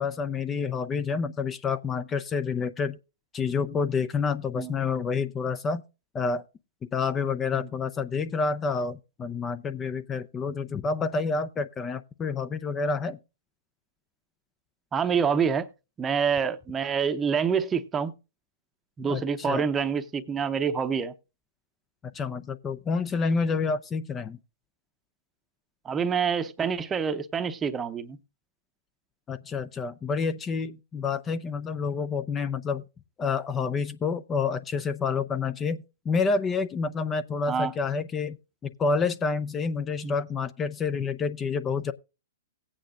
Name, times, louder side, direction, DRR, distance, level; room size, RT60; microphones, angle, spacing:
voice 1, 0.0-3.0 3.3-5.8 6.1-6.4 6.9-13.2 19.1-19.6 22.1-24.4 29.3-32.8 33.2-38.4 38.6-41.9, left 5 dB, 20° left, 0.5 m, -28 dB
voice 2, 14.9-15.7 16.0-18.1 19.0-21.1 25.8-28.2 37.5-37.7 40.0-40.1, right 6 dB, 20° right, 0.8 m, -27 dB
18.0 x 8.7 x 2.5 m
hypercardioid pair, 125°, 0 cm